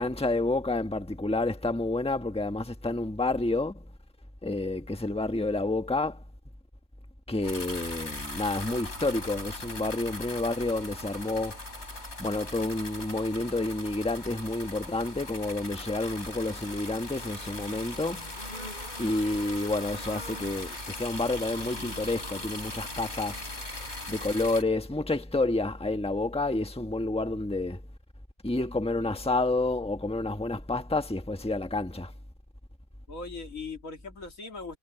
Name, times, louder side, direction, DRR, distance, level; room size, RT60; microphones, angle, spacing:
voice 1, 0.0-3.8 4.4-6.2 7.3-11.6 12.2-18.3 19.0-23.4 23.8-27.8 28.4-32.1, left 2 dB, 5° left, 1.4 m, -29 dB
sound 1, 7.4-24.6, left 2 dB, 55° left, 4.9 m, -40 dB
sound 2, 17.1-24.4, left 1 dB, 35° left, 5.4 m, -46 dB
voice 2, 29.0-29.4 33.1-34.8, left 4 dB, 85° left, 3.0 m, -40 dB
omnidirectional pair, 1.3 m